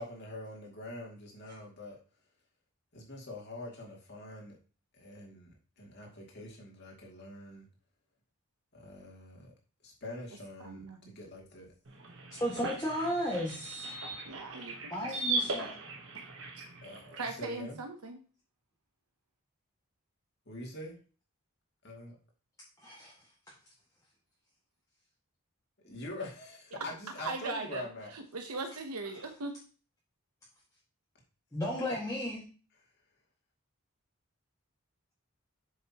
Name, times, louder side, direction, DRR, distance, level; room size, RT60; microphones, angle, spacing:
voice 1, 0.0-2.0 2.9-4.6 4.9-7.7 8.7-9.5 9.8-11.7 16.8-17.8 20.5-21.0 21.8-22.2 25.8-28.1, left 1 dB, 50° left, -1 dB, 2.5 m, -44 dB
voice 2, 10.6-11.2 14.3-15.2 16.5-16.6 17.2-18.2 27.2-27.9 28.1-29.6, right 3 dB, 90° right, 5 dB, 1.0 m, -39 dB
sound 1, 11.9-17.3, right 3 dB, 55° right, 1.3 m, -38 dB
voice 3, 12.4-13.9 14.9-15.7 22.8-23.1 31.5-32.4, equal, 15° left, -7 dB, 1.8 m, -34 dB
8.1 x 6.6 x 3.0 m, 0.37 s
head